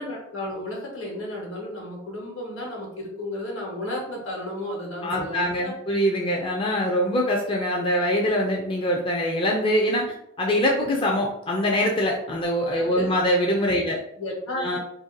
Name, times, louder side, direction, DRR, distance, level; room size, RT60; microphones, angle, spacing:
voice 1, 0.0-5.7 12.8-13.1 13.8-14.8, left 1 dB, 70° left, -1 dB, 1.2 m, -33 dB
voice 2, 5.0-14.0 14.6-14.8, equal, 25° left, -1 dB, 0.4 m, -23 dB
2.8 x 2.7 x 3.8 m, 0.76 s
head